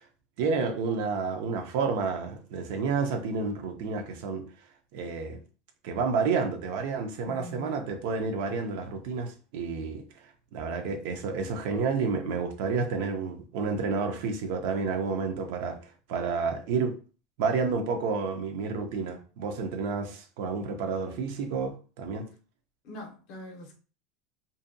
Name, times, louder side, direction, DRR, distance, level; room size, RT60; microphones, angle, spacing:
voice 1, 0.4-4.4 4.9-5.4 5.8-10.0 10.5-15.8 16.1-17.0 17.4-22.3, right 5 dB, 55° right, 0.5 m, -30 dB
voice 2, 7.2-7.8 22.8-23.8, equal, 40° left, 0.6 m, -43 dB
2.6 x 2.2 x 2.5 m
supercardioid pair, 170°, 0 cm